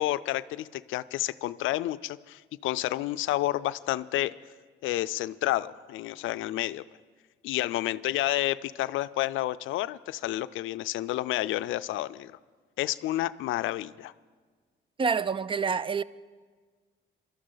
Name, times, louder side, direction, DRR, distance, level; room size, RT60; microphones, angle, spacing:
voice 1, 0.0-4.3 4.8-6.8 7.4-12.3 12.8-14.1, left 15 dB, 85° left, 0.4 m, -30 dB
voice 2, 15.0-16.0, right 5 dB, 25° right, 0.3 m, -27 dB
23.0 x 13.0 x 3.9 m
cardioid pair, 90°, 20 cm